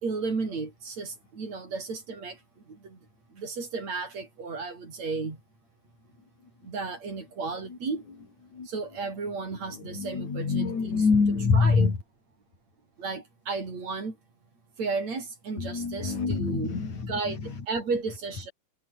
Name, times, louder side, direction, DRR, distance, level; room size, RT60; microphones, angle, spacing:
voice 1, 0.0-2.4 2.7-3.0 3.3-5.4 6.6-8.1 8.7-10.7 11.5-11.9 13.0-14.2 14.8-16.8 17.1-18.5, right 4 dB, 45° right, 6.2 m, -33 dB
voice 2, 9.7-12.0 15.6-17.5, left 4 dB, 50° left, 6.4 m, -26 dB
omnidirectional pair, 4.4 m